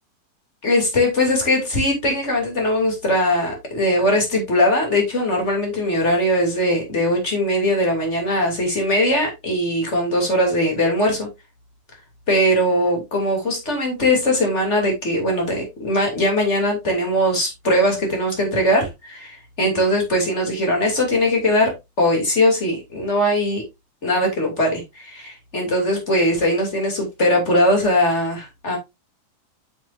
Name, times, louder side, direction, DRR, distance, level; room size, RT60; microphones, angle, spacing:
voice 1, 0.6-11.3 12.3-21.7 22.0-23.6 24.0-28.8, left 1 dB, 20° left, 1 dB, 2.8 m, -20 dB
9.3 x 6.1 x 2.6 m, 0.21 s
omnidirectional pair, 3.7 m